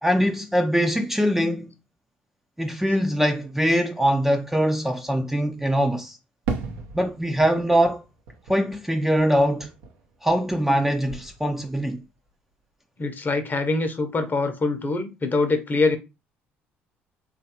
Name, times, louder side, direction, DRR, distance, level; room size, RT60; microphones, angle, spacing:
voice 1, 0.0-1.7 2.6-6.2 6.9-8.0 8.5-9.7 10.2-12.0, equal, 5° right, 0.4 m, -22 dB
Fireworks, 6.5-10.8 11.1-11.9, right 5 dB, 75° right, 0.6 m, -36 dB
voice 2, 13.0-16.0, left 3 dB, 35° left, 0.7 m, -24 dB
3.1 x 2.4 x 2.8 m
hypercardioid pair, 55°, 6 cm